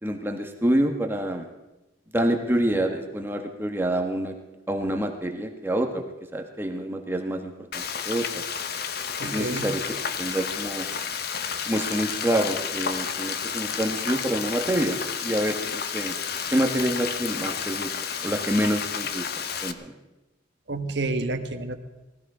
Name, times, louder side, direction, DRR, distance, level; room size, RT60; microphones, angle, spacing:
voice 1, 0.0-1.5 2.1-4.4 4.7-6.0 6.3-8.4 9.2-9.8 10.2-10.9 11.7-16.1 16.5-17.9 18.2-19.3 19.6-19.9, right 1 dB, 10° right, 3 dB, 1.2 m, -27 dB
Frying (food), 7.7-19.7, left 7 dB, 55° left, 0.8 m, -31 dB
voice 2, 9.2-9.7 20.7-21.7, right 2 dB, 65° right, 6 dB, 1.3 m, -29 dB
19.0 x 14.0 x 4.9 m, 1.0 s
head